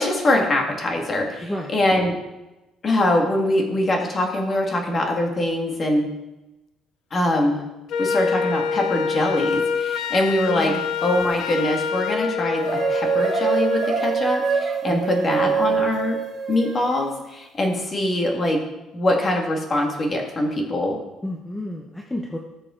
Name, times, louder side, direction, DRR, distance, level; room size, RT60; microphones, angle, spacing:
voice 1, 0.0-2.1 2.8-6.1 7.1-7.6 8.0-10.7 11.0-16.2 16.5-18.6 18.9-21.0, left 1 dB, 25° left, 1 dB, 1.9 m, -23 dB
Wind instrument woodwind instrument, 7.9-14.0, left 5 dB, 60° left, 0.5 m, -26 dB
voice 2, 10.6-10.9 14.9-15.5 21.2-22.4, left 1 dB, 5° left, 0 dB, 0.8 m, -31 dB
sound 1, 12.6-17.1, right 6 dB, 35° right, 1.4 m, -24 dB
18.5 x 6.7 x 3.8 m, 1.0 s
cardioid pair, 180°, 0 cm